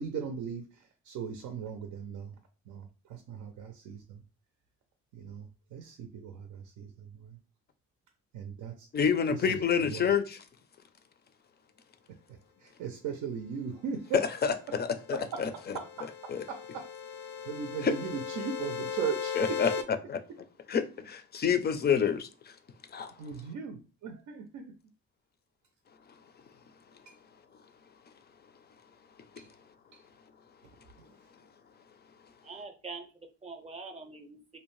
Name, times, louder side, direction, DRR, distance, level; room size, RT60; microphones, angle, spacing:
voice 1, 0.0-2.4 2.7-4.2 5.1-7.4 8.3-8.9 9.3-10.1 12.6-14.2 14.7-14.8 15.1-16.9 17.5-19.8 23.2-24.7 27.1-27.2 29.4-29.5 29.9-30.0 31.0-31.1, right 7 dB, 75° right, 0.5 m, -38 dB
voice 2, 8.9-10.4 14.4-14.5 15.1-15.5 16.3-16.4 17.8-17.9 19.4-19.7 20.1-20.2 20.7-22.3 22.9-23.1, left 7 dB, 35° left, 0.4 m, -27 dB
sound 1, 14.9-19.8, left 7 dB, 90° left, 0.5 m, -38 dB
voice 3, 32.4-34.6, right 4 dB, 20° right, 0.5 m, -44 dB
2.6 x 2.1 x 3.0 m
cardioid pair, 90°, 30 cm